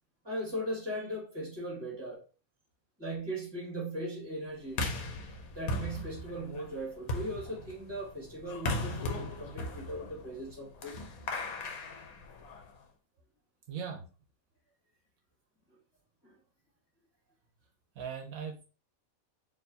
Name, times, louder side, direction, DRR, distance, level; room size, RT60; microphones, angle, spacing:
voice 1, 0.2-2.2 3.0-4.8 5.5-11.0 16.2-16.3, right 1 dB, 20° right, 1.8 m, -38 dB
sound 1, 4.7-12.8, left 2 dB, 90° left, 1.3 m, -38 dB
voice 2, 13.7-14.1 18.0-18.6, right 7 dB, 80° right, 1.1 m, -39 dB
4.4 x 3.0 x 2.7 m
omnidirectional pair, 1.5 m